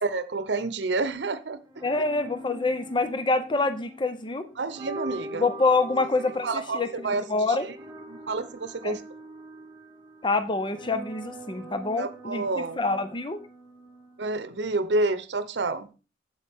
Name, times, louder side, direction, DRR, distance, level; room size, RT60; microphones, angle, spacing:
voice 1, 0.0-1.6 4.6-5.5 6.4-7.2 8.1-9.0 12.0-12.8 14.2-15.9, right 3 dB, 80° right, 14 dB, 0.7 m, -29 dB
sound 1, 1.6-14.6, right 1 dB, 20° right, 1.5 m, -43 dB
voice 2, 1.8-4.5 5.4-6.9 7.2-7.7 8.8-9.0 10.2-12.5 12.8-13.4, left 3 dB, 25° left, 11 dB, 0.6 m, -26 dB
8.5 x 7.9 x 3.5 m, 0.33 s
head